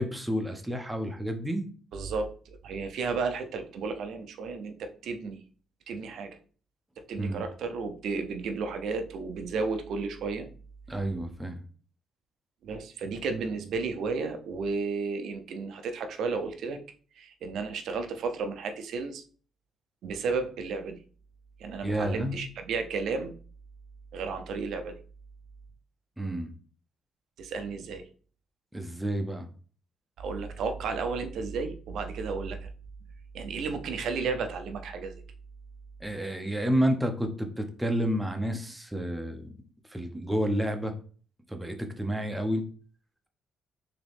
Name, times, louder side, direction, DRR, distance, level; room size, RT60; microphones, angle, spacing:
voice 1, 0.0-1.7 7.2-7.4 10.9-11.6 21.8-22.4 26.2-26.5 28.7-29.5 36.0-39.5 39.9-40.9 41.5-42.6, equal, 10° right, 5 dB, 0.8 m, -30 dB
voice 2, 1.9-5.4 5.9-6.4 7.0-10.5 12.6-16.8 17.2-19.2 20.0-21.0 21.6-23.3 24.1-25.0 27.4-28.1 30.2-32.7 33.3-35.2, right 4 dB, 75° right, 7 dB, 0.6 m, -33 dB
3.8 x 2.9 x 3.5 m, 0.41 s
cardioid pair, 90°, 0 cm